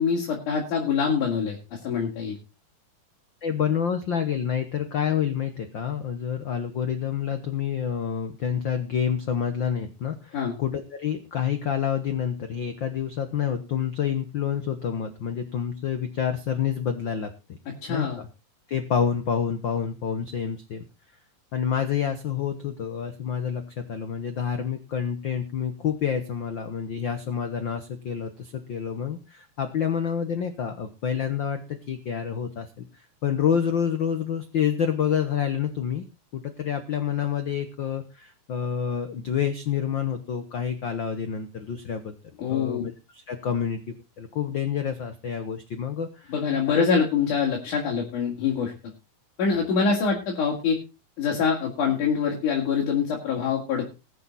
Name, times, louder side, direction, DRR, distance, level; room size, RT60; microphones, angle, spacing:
voice 1, 0.0-1.6 1.8-2.4 10.3-10.6 17.8-18.2 42.4-42.8 46.3-48.7 49.4-50.8 51.2-53.9, left 6 dB, 70° left, -1 dB, 4.0 m, -24 dB
voice 2, 3.4-17.6 17.9-18.3 18.7-20.9 21.5-36.0 36.3-42.2 42.5-46.3, left 8 dB, 85° left, 8 dB, 1.0 m, -28 dB
21.0 x 7.0 x 4.0 m, 0.28 s
omnidirectional pair, 3.8 m